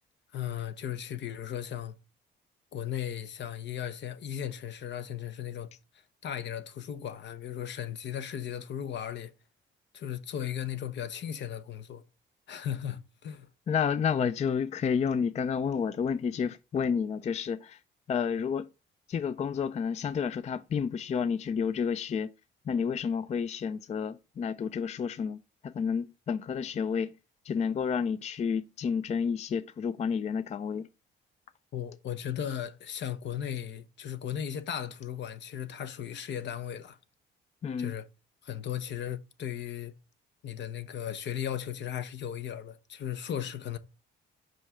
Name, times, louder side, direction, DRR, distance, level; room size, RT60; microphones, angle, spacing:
voice 1, 0.3-2.0 2.7-5.7 6.2-9.3 9.9-12.0 12.5-13.5 31.7-37.0 37.8-38.1 38.4-39.9 40.4-43.8, left 9 dB, 65° left, 0.8 m, -36 dB
voice 2, 13.7-17.8 18.1-18.7 19.1-22.3 22.7-27.1 27.4-30.9 37.6-37.9, left 6 dB, 35° left, 0.4 m, -30 dB
5.3 x 5.2 x 3.6 m
cardioid pair, 90°, 20 cm